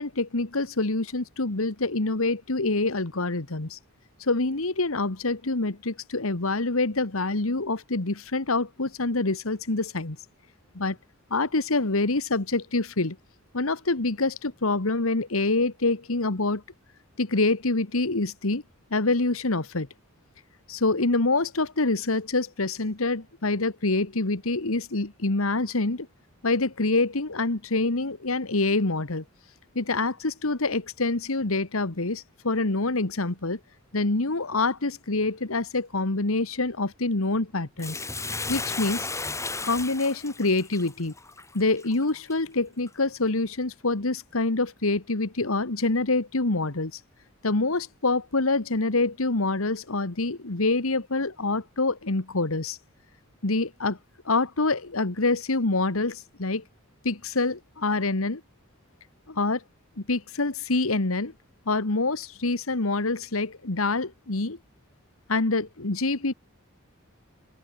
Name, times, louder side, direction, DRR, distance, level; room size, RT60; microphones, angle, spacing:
voice 1, 0.0-3.8 4.2-10.2 10.7-11.0 11.3-13.2 13.5-16.6 17.2-18.6 18.9-19.9 20.7-26.1 26.4-29.2 29.8-33.6 33.9-38.0 38.5-39.1 39.6-41.1 41.5-46.9 47.4-52.8 53.4-54.0 54.3-56.6 57.0-58.4 59.3-59.6 60.0-61.3 61.7-64.6 65.3-66.3, left 3 dB, 80° left, 1.7 m, -26 dB
Bathtub (filling or washing), 37.8-42.3 42.9-43.0, left 3 dB, 15° left, 3.0 m, -34 dB
open air
head